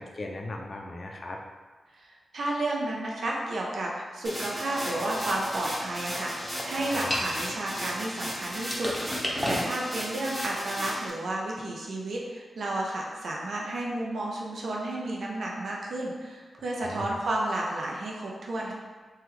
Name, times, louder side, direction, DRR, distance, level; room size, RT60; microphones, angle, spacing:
voice 1, 0.0-1.4 6.9-7.1 16.8-17.2, left 2 dB, 50° left, 2 dB, 0.4 m, -38 dB
voice 2, 1.9-18.7, right 1 dB, 75° right, -3 dB, 0.5 m, -32 dB
sound 1, 4.2-11.1, equal, 20° right, 0.9 m, -36 dB
sound 2, 4.6-8.3 8.7-9.6, equal, 5° left, 0.7 m, -34 dB
3.3 x 2.3 x 3.0 m, 1.4 s
cardioid pair, 65°, 0 cm